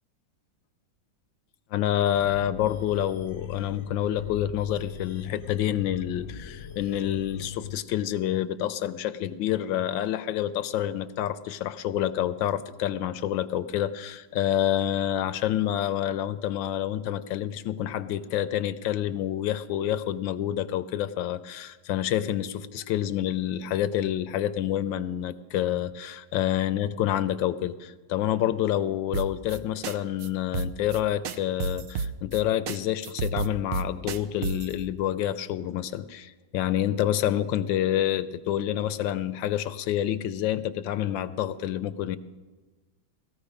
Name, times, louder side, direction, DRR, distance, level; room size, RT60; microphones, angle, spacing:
voice 1, 1.7-42.2, left 11 dB, 75° left, 13 dB, 1.3 m, -28 dB
sound 1, 2.1-7.8, left 6 dB, 45° left, 0.8 m, -42 dB
sound 2, 29.1-29.6 29.8-30.0 30.2-30.3 30.5-31.0 31.2-32.4 32.7-32.8 33.0-34.7, right 5 dB, 70° right, 0.8 m, -30 dB
18.5 x 14.0 x 5.1 m, 1.2 s
omnidirectional pair, 2.3 m